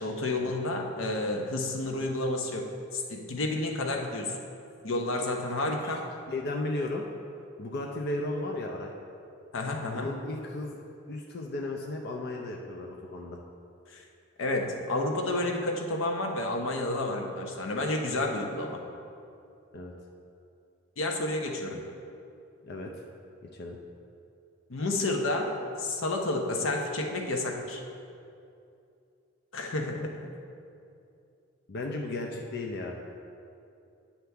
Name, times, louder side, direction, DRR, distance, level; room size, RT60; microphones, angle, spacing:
voice 1, 0.0-2.7 2.9-4.4 4.8-6.0 9.5-10.1 13.9-14.0 14.4-18.8 21.0-21.8 24.7-27.8 29.5-30.2, left 2 dB, 80° left, 2 dB, 0.8 m, -30 dB
voice 2, 5.7-6.0 6.3-7.0 7.6-8.9 9.9-10.8 11.1-13.4 19.7-19.9 21.7-21.8 22.6-22.9 23.5-23.8 31.7-33.0, left 2 dB, 55° left, 0 dB, 0.5 m, -35 dB
9.4 x 5.8 x 3.4 m, 2.6 s
head